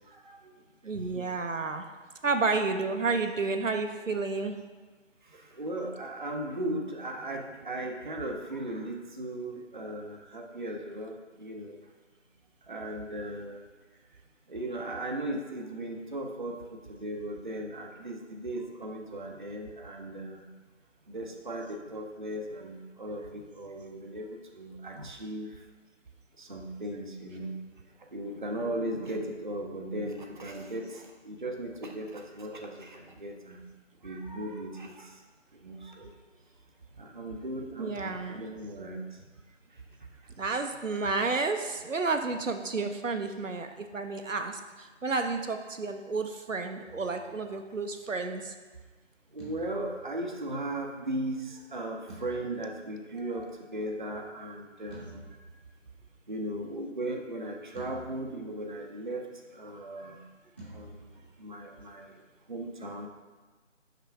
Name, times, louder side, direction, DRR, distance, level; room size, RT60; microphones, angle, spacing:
voice 1, 0.1-0.5 0.9-1.4 5.2-11.8 12.6-13.6 14.5-20.4 21.1-25.6 26.4-27.5 28.1-33.7 34.0-35.2 35.5-36.1 37.0-39.0 39.7-39.8 49.3-55.4 56.3-60.2 60.7-62.1 62.5-63.1, right 1 dB, 40° right, 2 dB, 0.6 m, -37 dB
voice 2, 0.8-1.9 2.2-4.6 37.8-38.4 40.4-48.5, right 4 dB, 90° right, 6 dB, 0.7 m, -31 dB
sound 1, 46.8-48.1 49.4-51.1 52.1-53.4 54.9-56.3 57.7-58.9 60.6-62.0, right 1 dB, 10° left, 0.9 m, -51 dB
5.7 x 5.7 x 3.5 m, 1.3 s
figure-of-eight pair, 160°, 37 cm